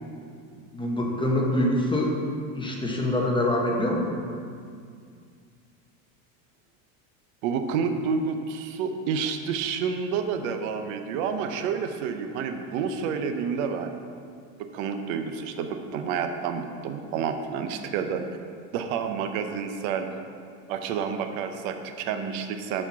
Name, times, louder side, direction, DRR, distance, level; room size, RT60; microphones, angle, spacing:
voice 1, 0.7-2.1 2.5-4.0, left 1 dB, 10° left, -1 dB, 1.1 m, -25 dB
voice 2, 7.4-13.9 14.6-18.2 18.7-20.1 20.7-22.8, right 6 dB, 75° right, 7 dB, 0.8 m, -29 dB
7.3 x 4.4 x 5.7 m, 2.2 s
supercardioid pair, 115°, 41 cm